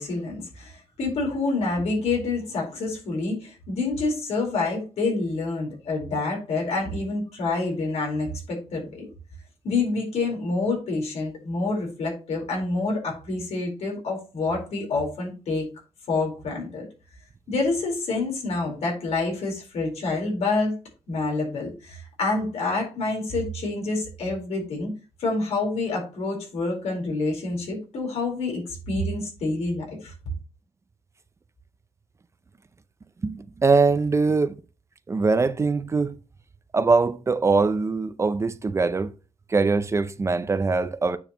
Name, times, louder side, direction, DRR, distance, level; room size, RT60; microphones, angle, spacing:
voice 1, 0.0-9.0 9.6-15.7 16.1-16.9 17.5-20.7 21.1-24.9 25.2-30.1, left 3 dB, 85° left, 4.3 m, -27 dB
voice 2, 33.2-34.5 35.1-36.2 36.7-39.1 39.5-41.2, right 4 dB, 25° right, 0.5 m, -22 dB
9.4 x 6.4 x 3.0 m
wide cardioid pair, 130°, 11 cm